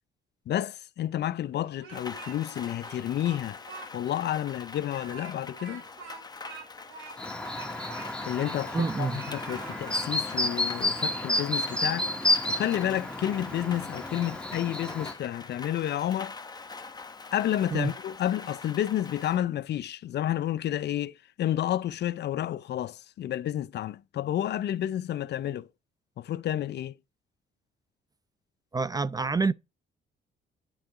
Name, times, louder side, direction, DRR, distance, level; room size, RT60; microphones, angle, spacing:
voice 1, 0.5-3.6 3.9-5.8 8.3-16.3 17.3-25.7 26.2-26.9, left 11 dB, 60° left, 0.5 m, -30 dB
Speech, 1.6-2.5 2.8-3.9 4.2-4.3 4.8-8.9 9.2-10.1, right 6 dB, 90° right, 3.5 m, -46 dB
Rain, 1.9-19.4, left 4 dB, 20° left, 0.8 m, -44 dB
Chirp tweet, 7.2-15.1, left 1 dB, 5° left, 1.3 m, -31 dB
voice 2, 8.7-9.2 17.7-17.9 28.7-29.5, right 4 dB, 20° right, 0.3 m, -27 dB
10.0 x 3.8 x 4.8 m
cardioid pair, 90°, 20 cm